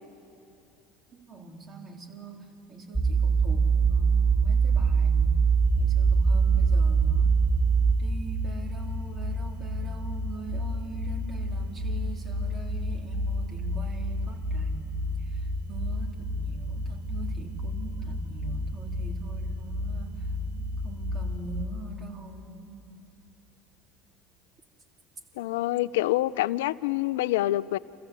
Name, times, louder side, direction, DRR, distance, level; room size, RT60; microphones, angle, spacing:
voice 1, 1.1-5.5 5.8-7.4 8.0-20.2 20.8-22.8, right 3 dB, 35° right, 1 dB, 3.5 m, -43 dB
sound 1, 2.9-7.9, right 6 dB, 10° left, 0.9 m, -22 dB
sound 2, 5.5-21.6, left 1 dB, 70° right, 2.2 m, -32 dB
voice 2, 25.4-27.8, left 16 dB, 80° left, 17 dB, 0.4 m, -26 dB
27.5 x 15.0 x 8.3 m, 2.9 s
hypercardioid pair, 80°, 0 cm